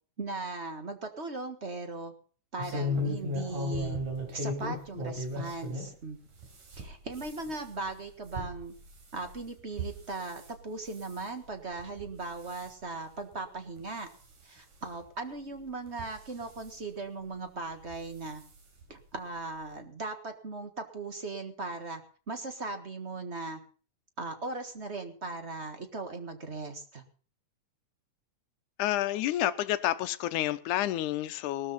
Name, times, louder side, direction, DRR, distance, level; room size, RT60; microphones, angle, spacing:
voice 1, 0.2-2.1 2.5-4.0 4.3-6.2 6.7-8.7 9.1-14.1 14.4-18.4 18.9-22.0 22.3-23.6 24.2-27.0, right 3 dB, 30° right, 1.2 m, -38 dB
sound 1, 2.6-5.9 6.4-10.5 10.9-11.3 11.8-12.1 12.4-12.7 13.3-13.4 13.8-13.9 15.0-15.1 15.9-16.7 17.8-18.0 18.4-18.5 18.8-18.9, left 1 dB, 80° right, 5.2 m, -36 dB
voice 2, 28.8-31.7, left 13 dB, 85° left, 2.3 m, -29 dB
19.0 x 13.0 x 4.2 m
omnidirectional pair, 3.5 m